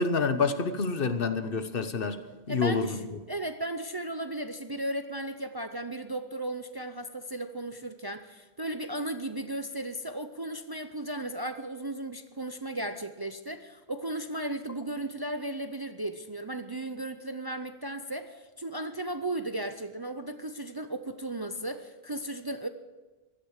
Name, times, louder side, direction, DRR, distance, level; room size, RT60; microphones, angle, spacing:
voice 1, 0.0-2.2 2.5-3.0, left 4 dB, 65° left, 10 dB, 1.2 m, -27 dB
voice 2, 2.5-3.0 3.3-22.7, right 1 dB, 30° right, 8 dB, 0.5 m, -35 dB
16.0 x 12.0 x 6.5 m, 1.2 s
omnidirectional pair, 1.0 m